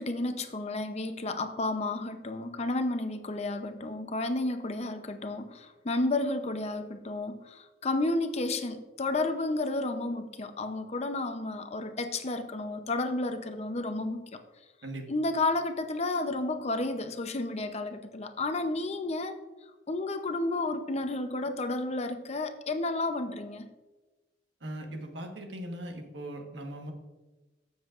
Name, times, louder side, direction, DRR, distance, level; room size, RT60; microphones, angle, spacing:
voice 1, 0.0-14.4 15.1-19.4 19.9-23.7, left 2 dB, 35° left, 8 dB, 0.7 m, -31 dB
voice 2, 24.6-26.9, right 1 dB, 85° right, 3 dB, 1.3 m, -39 dB
14.5 x 7.2 x 2.5 m, 1.2 s
head